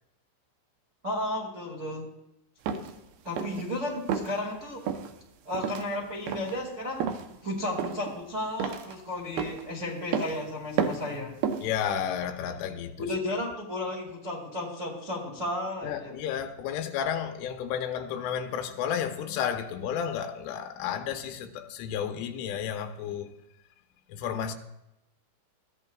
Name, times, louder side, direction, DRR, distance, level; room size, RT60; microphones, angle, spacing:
voice 1, 1.0-2.1 3.2-4.8 5.4-7.1 7.4-11.3 13.0-16.2, left 1 dB, 40° right, 1.0 m, -33 dB
sound 1, 2.7-3.0 3.4-3.7 4.1-4.3 4.9-5.1 5.5-5.9 6.3-6.6 7.0-7.3 7.8-8.2 8.6-8.9 9.4-9.6 10.1-10.4 10.8-11.1 11.4-11.7, right 7 dB, 80° right, 2.2 m, -31 dB
voice 2, 11.6-13.1 15.8-23.4 24.1-24.5, left 8 dB, 80° left, 3.3 m, -32 dB
22.0 x 14.5 x 2.4 m
omnidirectional pair, 5.6 m